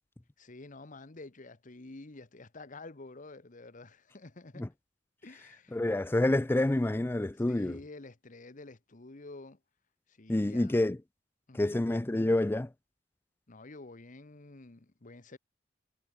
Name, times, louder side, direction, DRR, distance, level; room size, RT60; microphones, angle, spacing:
voice 1, 0.4-4.7 5.2-5.8 7.5-9.6 10.1-10.8 11.5-11.8 13.5-15.4, left 2 dB, 45° left, 1.2 m, -49 dB
voice 2, 5.7-7.8 10.3-11.0 11.5-12.7, left 1 dB, 10° left, 0.4 m, -28 dB
head